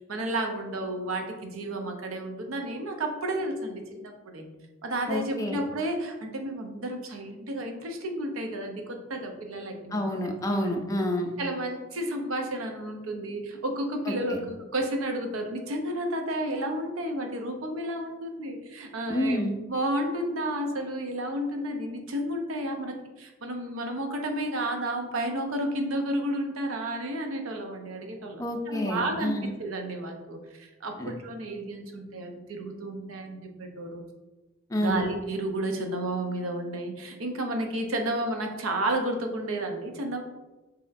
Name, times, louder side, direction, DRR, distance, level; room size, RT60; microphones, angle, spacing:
voice 1, 0.1-4.5 4.8-10.1 10.5-10.7 11.4-19.4 19.7-29.3 29.6-34.0 34.8-40.2, right 1 dB, 80° right, 4 dB, 0.7 m, -32 dB
voice 2, 5.1-5.6 9.9-11.4 14.1-14.4 19.1-19.5 28.4-29.5 31.0-31.1 34.7-35.1, left 1 dB, 15° left, 3 dB, 0.5 m, -29 dB
6.3 x 2.8 x 2.5 m, 1.1 s
head